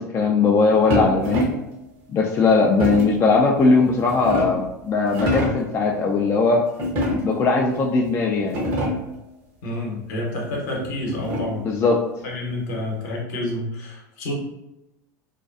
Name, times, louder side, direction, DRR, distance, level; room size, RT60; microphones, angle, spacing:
voice 1, 0.0-1.5 2.1-6.7 7.1-8.6 11.6-12.0, left 4 dB, 25° left, 0 dB, 0.3 m, -19 dB
sound 1, 0.9-1.7 2.8-3.2 3.9-4.7 5.1-5.7 6.8-7.5 8.1-8.2 8.4-9.2 10.5-11.7, left 1 dB, 50° right, 0.8 m, -26 dB
voice 2, 9.6-11.7 12.2-14.3, left 1 dB, 60° left, -1 dB, 0.8 m, -29 dB
2.5 x 2.2 x 2.4 m, 0.93 s
hypercardioid pair, 80°, 10 cm